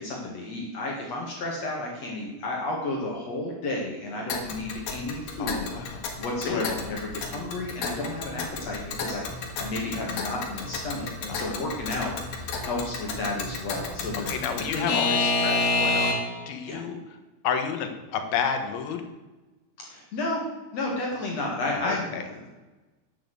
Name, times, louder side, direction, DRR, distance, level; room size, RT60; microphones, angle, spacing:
voice 1, 0.0-5.7 6.2-14.3 14.7-15.0 16.7-16.8 19.8-20.4 20.7-22.5, left 2 dB, 50° left, -2 dB, 2.6 m, -32 dB
Alarm / Clock, 4.3-16.5, left 3 dB, 75° left, 3.3 m, -30 dB
voice 2, 5.4-6.1 6.4-6.7 11.3-11.6 14.1-16.2 16.5-17.0 17.4-19.0 21.7-22.2, left 7 dB, 90° left, 6 dB, 3.2 m, -31 dB
10.0 x 7.1 x 7.7 m, 1.1 s
omnidirectional pair, 4.1 m